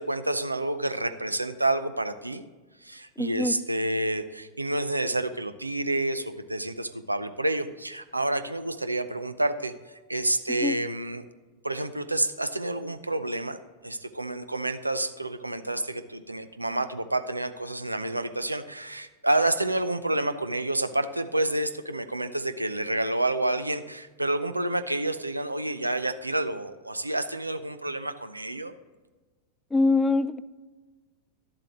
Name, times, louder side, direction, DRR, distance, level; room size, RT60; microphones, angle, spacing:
voice 1, 0.0-2.4 2.8-9.7 10.1-11.2 11.6-13.6 13.8-28.7, right 1 dB, 85° right, 11 dB, 0.5 m, -29 dB
voice 2, 3.2-3.5 10.6-10.8 29.7-30.4, left 3 dB, 10° left, 15 dB, 0.4 m, -23 dB
12.0 x 7.6 x 3.0 m, 1.3 s
figure-of-eight pair, 90°, 0 cm